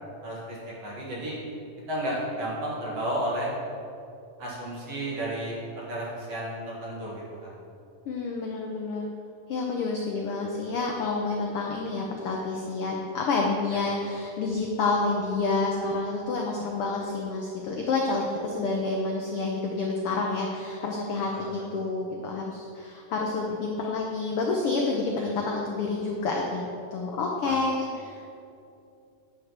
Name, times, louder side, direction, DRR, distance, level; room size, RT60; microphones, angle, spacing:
voice 1, 0.2-1.4 1.9-3.5 4.4-5.6 5.9-7.5 21.3-21.5 27.4-27.6, right 1 dB, 55° right, -5 dB, 2.8 m, -32 dB
voice 2, 8.1-9.1 9.5-26.6 26.9-28.3, left 3 dB, 75° left, 0 dB, 1.3 m, -29 dB
9.4 x 5.1 x 7.3 m, 2.6 s
omnidirectional pair, 3.6 m